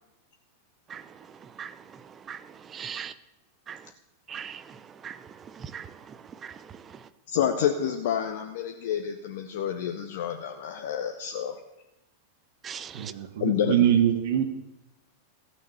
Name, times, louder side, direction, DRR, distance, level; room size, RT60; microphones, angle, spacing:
voice 1, 2.7-3.1 3.7-3.8 4.3-4.6 5.0-5.2 5.5-6.2 6.4-6.6 12.6-13.1, right 8 dB, 25° right, 14 dB, 0.7 m, -39 dB
voice 2, 7.3-11.6 13.4-13.7, left 9 dB, 55° left, 5 dB, 0.9 m, -28 dB
voice 3, 12.9-14.4, right 10 dB, 55° right, 9 dB, 1.1 m, -23 dB
14.5 x 6.4 x 8.1 m, 0.94 s
figure-of-eight pair, 90°, 0 cm